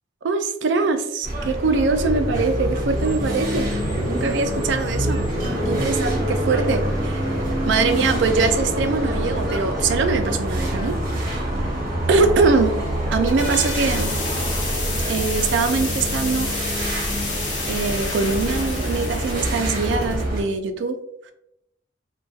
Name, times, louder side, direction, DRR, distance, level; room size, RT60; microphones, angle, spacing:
voice 1, 0.2-3.7 4.0-5.2 5.7-7.3 7.7-10.9 11.3-11.5 12.1-12.8 13.1-14.1 15.1-16.5 17.7-21.0, right 4 dB, 70° right, 8 dB, 0.3 m, -22 dB
sound 1, 1.2-20.4, right 1 dB, 45° right, 0.7 m, -25 dB
sound 2, 8.1-16.6, left 1 dB, 20° left, 0.8 m, -40 dB
sound 3, 13.0-20.3, left 2 dB, 65° left, 0.7 m, -30 dB
2.6 x 2.2 x 2.3 m, 0.80 s
head